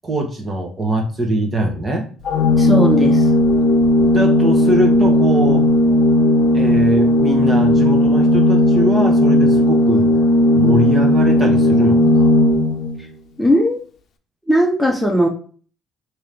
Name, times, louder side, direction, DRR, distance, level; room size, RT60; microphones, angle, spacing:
voice 1, 0.0-2.1 4.0-5.6 6.5-10.1 10.6-12.3, right 1 dB, 35° right, 2 dB, 1.2 m, -22 dB
Organ, 2.2-13.0, left 1 dB, 60° left, 0.6 m, -14 dB
voice 2, 2.6-3.3 13.0-13.1 13.4-13.8 14.5-15.3, equal, ahead, 0 dB, 0.8 m, -17 dB
3.6 x 3.0 x 3.3 m, 0.42 s
supercardioid pair, 80°, 0 cm